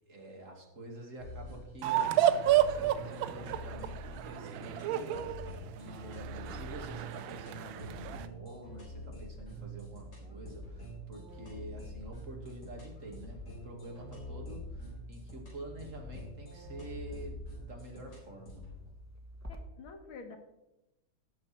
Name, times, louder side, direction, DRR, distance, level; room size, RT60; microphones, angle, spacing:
voice 1, 0.1-18.7, right 1 dB, 40° right, 1 dB, 2.5 m, -47 dB
sound 1, 1.2-18.8, left 1 dB, 55° left, 4.8 m, -46 dB
sound 2, 1.8-8.3, right 11 dB, 75° right, 1.4 m, -31 dB
sound 3, 9.0-19.6, equal, 15° right, 0.7 m, -51 dB
voice 2, 19.5-20.4, left 4 dB, 80° left, 5 dB, 2.1 m, -48 dB
17.0 x 6.4 x 4.4 m, 0.93 s
omnidirectional pair, 2.3 m